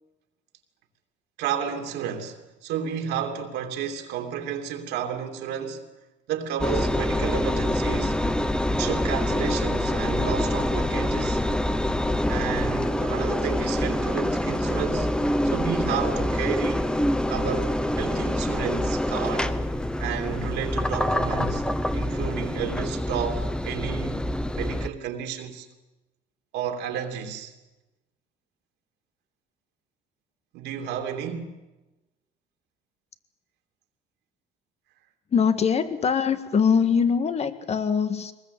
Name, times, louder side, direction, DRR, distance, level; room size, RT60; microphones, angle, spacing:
voice 1, 1.4-5.9 6.3-8.2 8.8-11.4 12.3-16.9 17.3-19.5 20.0-21.6 21.9-24.3 24.5-25.7 26.5-27.5 30.5-31.5, right 8 dB, 90° right, 3.1 m, -32 dB
Engine, 6.6-24.9, left 1 dB, 5° left, 1.0 m, -26 dB
voice 2, 35.3-38.3, left 6 dB, 40° left, 1.7 m, -22 dB
23.0 x 20.0 x 8.6 m
cardioid pair, 110°, 17 cm